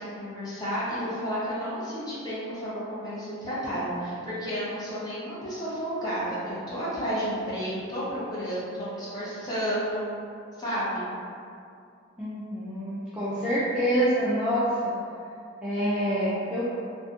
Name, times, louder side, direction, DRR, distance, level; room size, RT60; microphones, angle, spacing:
voice 1, 0.0-10.1 10.6-11.1, equal, 20° left, -10 dB, 0.7 m, -31 dB
voice 2, 12.2-14.9 15.6-16.7, equal, 5° right, -12 dB, 0.3 m, -26 dB
2.6 x 2.5 x 2.3 m, 2.4 s
head